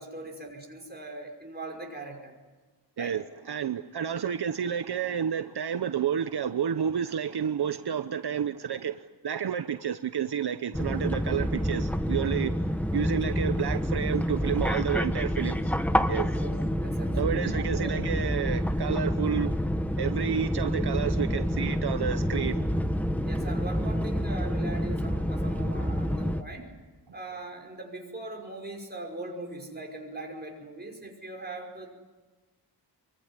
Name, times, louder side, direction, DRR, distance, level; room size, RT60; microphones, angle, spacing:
voice 1, 0.0-2.3 3.0-3.2 16.3-18.0 23.2-26.7 27.1-31.9, right 2 dB, 25° right, 5.6 m, -40 dB
voice 2, 3.0-12.6 12.9-15.7 16.1-16.3 17.2-19.6 20.0-22.7, right 8 dB, 70° right, 0.9 m, -30 dB
sound 1, 10.7-26.4, equal, 5° left, 1.1 m, -28 dB
25.0 x 23.5 x 9.8 m
wide cardioid pair, 140°, 41 cm